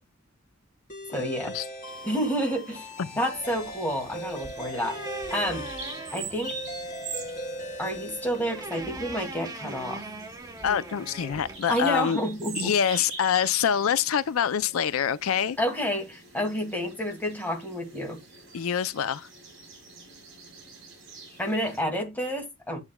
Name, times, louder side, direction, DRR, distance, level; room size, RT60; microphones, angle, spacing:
sound 1, 0.9-9.0, equal, 40° left, 3.0 m, -39 dB
voice 1, 1.1-1.6 2.0-2.9 3.2-5.0 5.3-5.7 6.1-6.5 7.8-10.0 11.7-12.7 15.6-18.2 21.4-22.8, equal, 10° left, 2.1 m, -29 dB
Bird vocalization bird call bird song, 1.9-21.8, right 4 dB, 60° right, 5.9 m, -45 dB
sound 2, 3.3-12.1, right 2 dB, 15° right, 0.9 m, -42 dB
voice 2, 10.6-12.2 12.6-15.6 18.5-19.3, left 8 dB, 85° left, 0.4 m, -25 dB
9.7 x 7.0 x 2.2 m
head